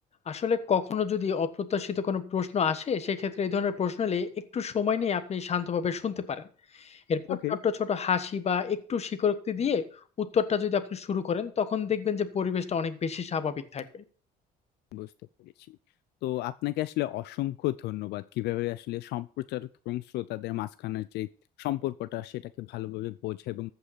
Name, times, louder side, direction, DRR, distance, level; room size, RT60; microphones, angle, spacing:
voice 1, 0.3-6.5 6.7-14.0, left 7 dB, 40° left, 12 dB, 1.3 m, -29 dB
voice 2, 15.4-15.8 16.2-21.3 21.6-23.7, left 17 dB, 80° left, 15 dB, 0.5 m, -33 dB
14.5 x 5.5 x 5.7 m, 0.41 s
cardioid pair, 110°, 17 cm